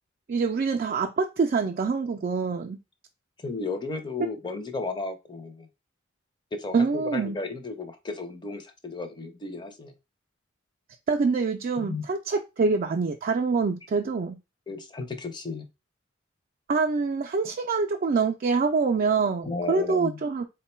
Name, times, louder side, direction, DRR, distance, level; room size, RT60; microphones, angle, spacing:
voice 1, 0.3-2.8 6.7-7.4 11.1-14.4 16.7-20.4, right 4 dB, 45° right, 0.4 m, -25 dB
voice 2, 3.4-5.7 6.5-9.9 11.8-12.0 14.7-15.7 19.4-20.2, left 3 dB, 25° left, 0.6 m, -34 dB
3.7 x 2.2 x 4.2 m
head